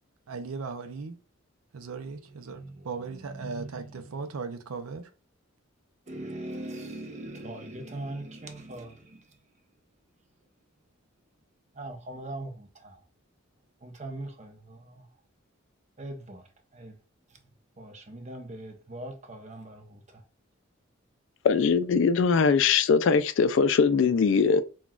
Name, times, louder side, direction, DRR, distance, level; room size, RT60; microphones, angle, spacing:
voice 1, 0.3-1.2 1.7-5.1, right 4 dB, 90° right, 0.5 m, -37 dB
voice 2, 2.0-2.9 3.3-4.1 6.1-9.2 11.7-13.0 13.8-15.0 16.0-16.5 16.7-16.9 17.8-20.2, right 1 dB, 35° right, 0.7 m, -41 dB
voice 3, 21.4-24.6, left 5 dB, 60° left, 0.3 m, -21 dB
5.9 x 2.3 x 2.3 m
head